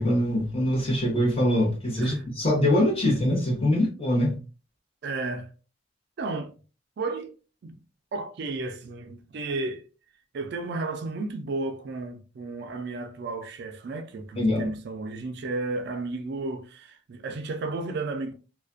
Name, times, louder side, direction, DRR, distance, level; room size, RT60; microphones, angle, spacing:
voice 1, 0.0-4.4 14.3-14.7, left 1 dB, 30° left, 0.8 m, -23 dB
voice 2, 2.0-2.5 3.0-3.1 5.0-5.5 6.2-6.5 7.0-7.3 7.6-7.8 8.1-9.9 10.3-18.3, right 3 dB, 60° right, 0.4 m, -33 dB
2.3 x 2.2 x 2.4 m
head